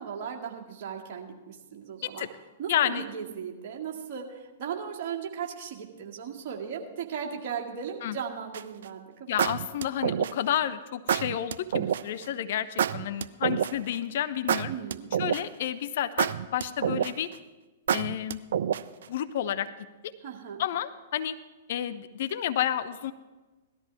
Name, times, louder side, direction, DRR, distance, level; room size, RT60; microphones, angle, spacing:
voice 1, 0.0-2.3 2.6-9.6 14.7-15.2 20.2-20.6, right 7 dB, 45° right, -1 dB, 2.1 m, -37 dB
voice 2, 2.7-3.0 8.0-8.2 9.3-14.7 15.2-17.3 17.9-18.4 19.1-19.7 20.6-21.3 21.7-23.1, left 10 dB, 55° left, 12 dB, 0.6 m, -30 dB
sound 1, 8.5-8.8 9.4-10.5 11.1-12.0 12.8-13.9 14.5-15.6 16.2-17.3 17.9-19.0, right 9 dB, 60° right, 0.4 m, -27 dB
17.5 x 13.0 x 3.5 m, 1.2 s
figure-of-eight pair, 110°, 0 cm